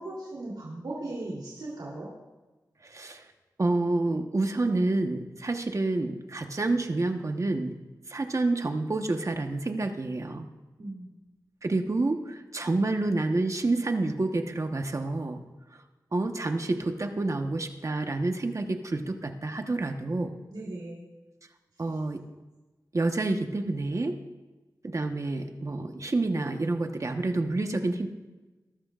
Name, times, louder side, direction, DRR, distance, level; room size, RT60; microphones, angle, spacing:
voice 1, 0.0-2.1 10.8-11.1 20.5-21.0, right 2 dB, 90° right, -6 dB, 3.3 m, -37 dB
voice 2, 2.8-3.3 3.6-7.7 8.1-10.5 11.6-15.4 16.1-20.4 21.8-22.2 22.9-24.2 24.8-28.1, right 2 dB, 45° right, 5 dB, 1.2 m, -28 dB
21.5 x 12.0 x 2.5 m, 1.2 s
wide cardioid pair, 65°, 7 cm